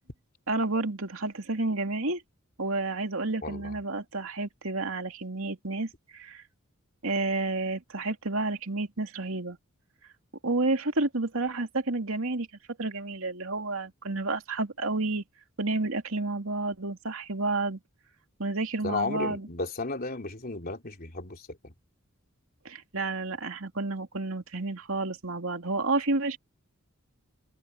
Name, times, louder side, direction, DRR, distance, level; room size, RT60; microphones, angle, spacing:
voice 1, 0.5-2.2 2.6-6.4 7.0-9.6 10.4-12.5 12.8-15.2 15.6-17.8 18.4-19.5 22.6-26.4, right 3 dB, 70° right, 2.9 m, -30 dB
voice 2, 3.4-3.8 18.8-21.7, left 3 dB, 45° left, 3.5 m, -34 dB
head